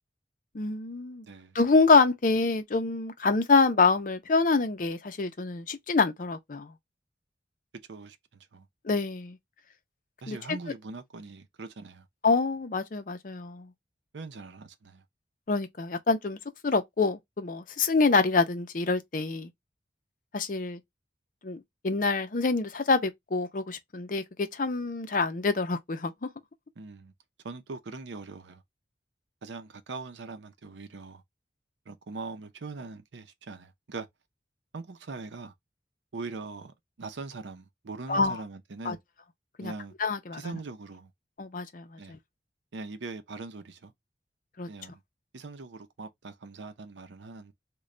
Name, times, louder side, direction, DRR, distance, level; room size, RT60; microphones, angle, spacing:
voice 1, 0.5-1.3 1.5-6.7 8.8-9.4 10.3-10.6 12.2-13.7 15.5-16.4 16.6-19.5 20.3-20.8 21.4-26.3 38.1-38.4 38.8-39.0 39.6-39.7 40.0-40.5 41.4-42.2 44.6-44.7, left 4 dB, 50° left, 0.5 m, -26 dB
voice 2, 1.2-1.6 7.9-8.7 10.2-12.1 14.1-15.0 26.8-27.1 27.4-28.6 29.4-31.2 31.9-34.1 34.7-35.5 36.1-39.0 39.6-39.9 40.3-41.1 42.0-42.2 42.7-43.9 44.7-45.0 45.3-47.5, right 3 dB, 90° right, 0.6 m, -41 dB
3.1 x 2.2 x 3.8 m
head